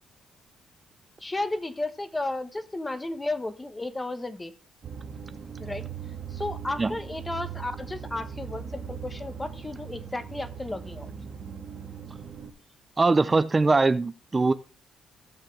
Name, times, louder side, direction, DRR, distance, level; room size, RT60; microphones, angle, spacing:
voice 1, 1.2-4.5 5.6-5.8 6.3-11.1, left 2 dB, 15° left, 10 dB, 1.2 m, -33 dB
sound 1, 4.8-12.5, right 7 dB, 50° right, 1.5 m, -39 dB
voice 2, 13.0-14.5, right 3 dB, 25° right, 12 dB, 0.5 m, -21 dB
16.0 x 6.5 x 3.3 m, 0.35 s
cardioid pair, 90°, 0 cm